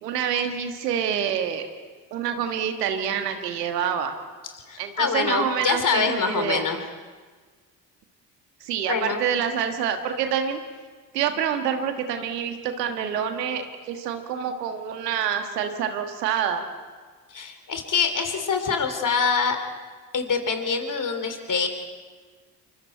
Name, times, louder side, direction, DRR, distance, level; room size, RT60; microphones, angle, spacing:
voice 1, 0.0-1.7 2.1-4.1 4.8-6.7 8.6-10.6 11.1-16.7, right 8 dB, 80° right, 7 dB, 1.6 m, -27 dB
voice 2, 4.7-6.8 8.9-9.2 17.3-19.6 20.1-21.7, left 5 dB, 40° left, 6 dB, 3.5 m, -25 dB
28.0 x 24.0 x 4.5 m, 1.5 s
figure-of-eight pair, 40°, 47 cm